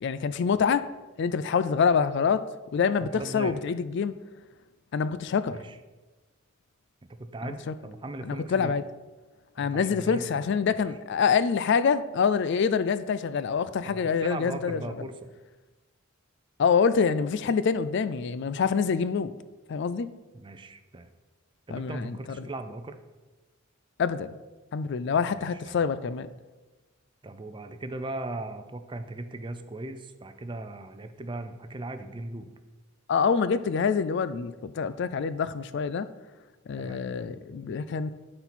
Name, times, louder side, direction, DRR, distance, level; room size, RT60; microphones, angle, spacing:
voice 1, 0.0-0.9 1.2-2.4 2.7-4.1 4.9-5.6 7.4-7.7 8.2-8.8 9.6-14.8 16.6-19.3 19.7-20.1 21.7-22.5 24.0-24.3 24.7-26.3 33.1-36.1 36.7-38.1, left 6 dB, 60° left, 0.3 m, -26 dB
voice 2, 3.1-3.6 5.5-5.8 7.1-8.7 9.6-10.8 13.8-15.3 20.3-21.1 21.7-23.0 25.3-25.8 27.2-32.5 36.8-37.0, right 2 dB, 25° right, 0.5 m, -38 dB
12.0 x 4.4 x 4.2 m
head